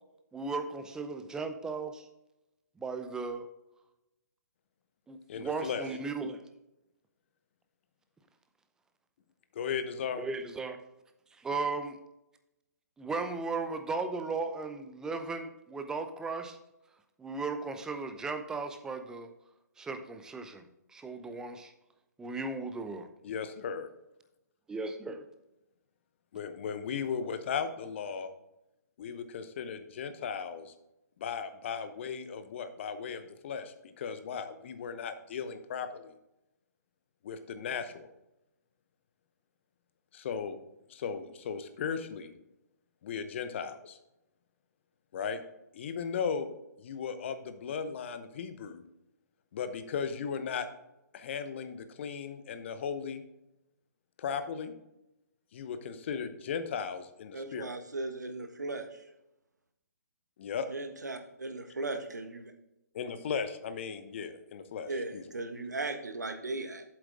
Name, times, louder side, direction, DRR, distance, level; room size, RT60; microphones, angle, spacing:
voice 1, 0.3-2.1 2.8-3.4 5.1-6.4 10.2-10.8 11.4-12.0 13.0-16.6 17.2-19.3 19.8-20.6 20.9-21.7 22.2-23.1 24.7-25.3, right 3 dB, 5° right, 7 dB, 0.6 m, -36 dB
voice 2, 5.3-5.8 9.5-10.2 23.2-23.9 26.3-28.3 29.0-30.7 31.2-36.1 37.2-38.1 40.1-40.6 40.9-42.3 43.0-44.0 45.1-45.4 45.7-46.5 46.8-48.8 49.5-50.7 51.1-53.2 54.2-54.7 55.5-57.7 60.4-60.7 62.9-65.2, left 6 dB, 40° left, 10 dB, 0.9 m, -36 dB
voice 3, 57.3-59.1 60.7-62.5 64.9-66.8, right 2 dB, 75° right, 6 dB, 1.4 m, -37 dB
7.9 x 7.6 x 3.7 m, 0.89 s
figure-of-eight pair, 130°, 9 cm